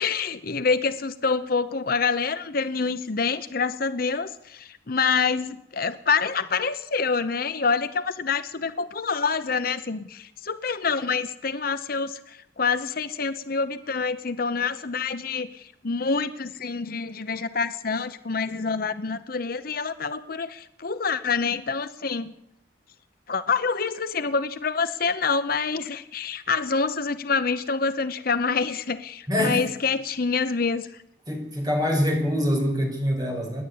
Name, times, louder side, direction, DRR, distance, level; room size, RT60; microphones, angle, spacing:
voice 1, 0.0-22.3 23.3-30.9, left 5 dB, 50° left, 11 dB, 0.8 m, -26 dB
voice 2, 29.3-29.6 31.3-33.6, equal, 20° right, 1 dB, 6.3 m, -24 dB
28.0 x 11.0 x 8.6 m, 0.81 s
head